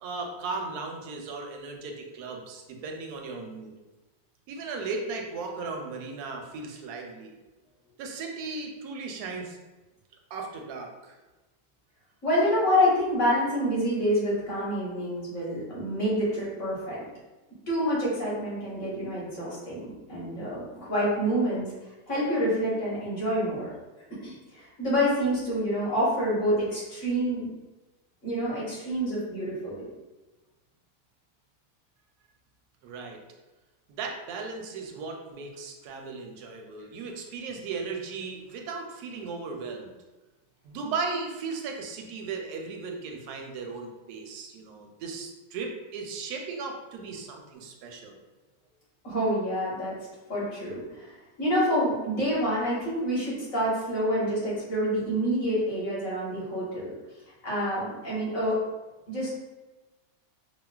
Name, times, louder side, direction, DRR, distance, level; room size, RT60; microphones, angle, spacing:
voice 1, 0.0-3.7 4.5-7.3 8.0-9.6 10.3-11.2 32.8-33.2 33.9-39.9 40.6-48.2, right 4 dB, 80° right, 2 dB, 1.1 m, -36 dB
voice 2, 12.2-17.0 17.7-21.7 22.1-23.7 24.1-27.5 28.2-29.8 49.0-50.0 50.3-56.9 57.4-58.6 59.1-59.3, equal, 55° left, -7 dB, 1.5 m, -27 dB
4.4 x 2.0 x 2.3 m, 1.1 s
omnidirectional pair, 1.6 m